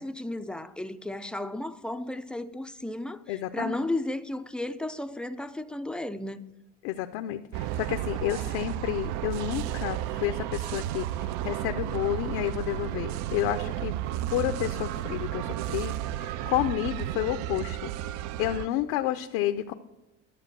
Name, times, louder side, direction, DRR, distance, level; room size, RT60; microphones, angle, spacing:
voice 1, 0.0-6.5, left 1 dB, 5° left, 0.4 m, -34 dB
voice 2, 3.3-3.7 6.8-13.9 14.3-17.9 18.4-19.7, left 13 dB, 80° left, 0.7 m, -30 dB
sound 1, 7.5-18.7, right 13 dB, 65° right, 0.5 m, -33 dB
12.0 x 7.2 x 6.8 m
cardioid pair, 130°, 30 cm